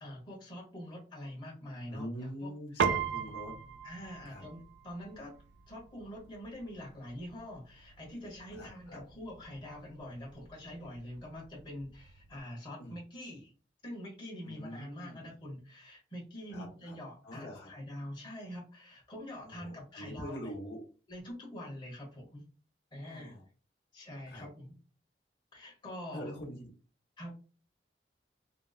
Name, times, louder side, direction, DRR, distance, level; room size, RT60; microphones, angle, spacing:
voice 1, 0.0-3.0 3.8-5.3 5.7-13.5 13.8-20.5 21.1-22.4 22.9-23.4 23.9-24.8 25.5-26.3 27.2-27.3, left 1 dB, 25° left, -2 dB, 1.2 m, -45 dB
voice 2, 1.9-3.5 4.3-4.4 8.5-9.0 12.8-13.0 14.4-15.2 16.5-17.0 17.2-17.7 19.5-20.8 23.0-23.4 24.3-24.5 26.1-26.7, equal, 75° left, -3 dB, 1.2 m, -44 dB
Piano, 2.8-12.4, right 6 dB, 90° right, 0.4 m, -40 dB
3.9 x 2.2 x 2.4 m, 0.38 s
head